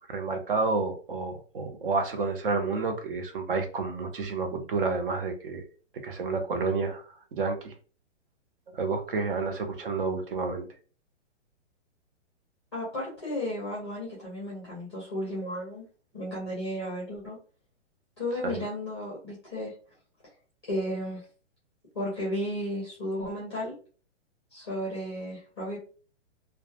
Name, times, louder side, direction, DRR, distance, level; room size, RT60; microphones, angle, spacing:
voice 1, 0.1-5.6 6.0-7.7 8.7-10.7 18.4-18.6, right 4 dB, 45° right, 0.5 m, -30 dB
voice 2, 12.7-15.8 16.1-17.4 18.2-19.7 20.6-21.2 21.9-23.7 24.5-25.8, left 1 dB, 20° left, 0.5 m, -33 dB
2.2 x 2.1 x 2.7 m
hypercardioid pair, 175°, 37 cm